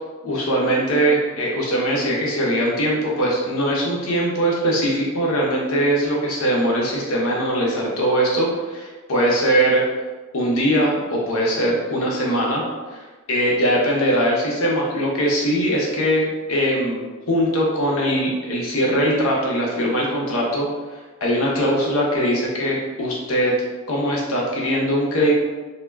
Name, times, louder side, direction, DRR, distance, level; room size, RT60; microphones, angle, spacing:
voice 1, 0.2-9.8 10.3-12.6 12.9-20.7 21.2-23.6 23.9-25.3, equal, 80° left, -3 dB, 0.7 m, -21 dB
2.2 x 2.1 x 3.3 m, 1.3 s
head